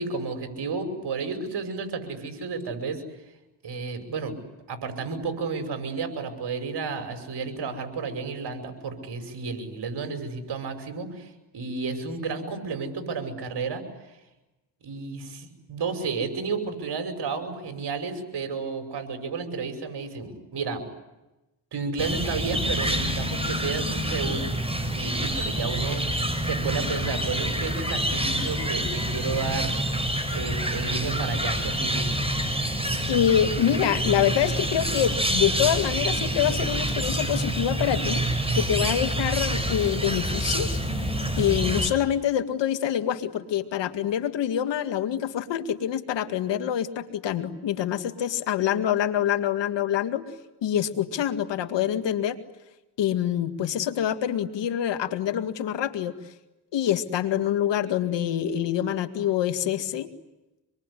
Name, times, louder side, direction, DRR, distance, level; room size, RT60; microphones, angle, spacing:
voice 1, 0.0-3.0 3.6-4.3 4.7-13.8 14.8-20.8 21.7-24.5 24.9-26.1 26.4-29.7 30.3-32.1, right 4 dB, 65° right, 7 dB, 5.8 m, -32 dB
sound 1, 22.0-41.9, right 1 dB, 15° right, 6.5 m, -27 dB
voice 2, 33.1-38.3 38.5-40.8 41.4-50.3 50.6-52.4 53.0-56.1 56.7-60.1, left 10 dB, 80° left, 9 dB, 2.1 m, -26 dB
26.5 x 22.0 x 9.9 m, 1.0 s
supercardioid pair, 55°, 43 cm